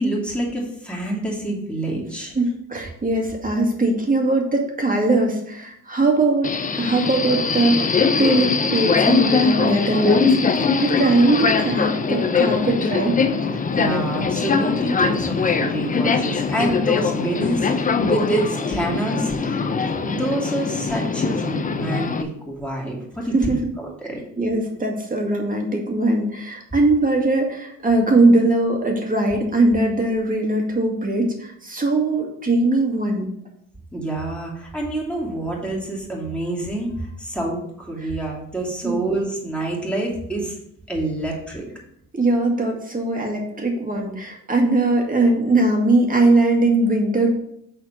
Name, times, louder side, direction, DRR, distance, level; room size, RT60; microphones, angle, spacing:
voice 1, 0.0-2.3 13.7-19.6 20.0-24.2 33.9-40.6 40.9-41.7, right 1 dB, 5° left, -3 dB, 2.6 m, -27 dB
voice 2, 2.4-6.5 6.8-10.4 10.8-13.1 23.3-23.6 24.4-33.3 38.8-39.1 42.1-47.3, right 2 dB, 25° right, 1 dB, 2.1 m, -20 dB
Subway metro underground, 6.4-22.2, left 5 dB, 25° left, 0.6 m, -21 dB
6.8 x 4.2 x 5.7 m, 0.72 s
cardioid pair, 90°, 30 cm